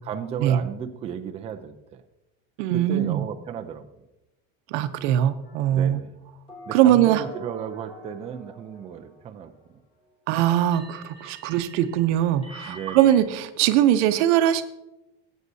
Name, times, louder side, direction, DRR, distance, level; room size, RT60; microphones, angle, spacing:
voice 1, 0.0-2.0 2.7-3.9 5.7-6.1 6.7-9.5 12.7-13.1, right 8 dB, 20° right, 5 dB, 0.4 m, -34 dB
voice 2, 2.6-3.2 4.7-6.0 6.7-7.2 10.3-14.6, right 11 dB, 85° right, 11 dB, 0.8 m, -21 dB
sound 1, 5.4-6.0 6.5-9.6 10.7-13.2, right 1 dB, 15° left, 4.1 m, -46 dB
17.0 x 8.1 x 2.7 m, 0.93 s
cardioid pair, 165°, 34 cm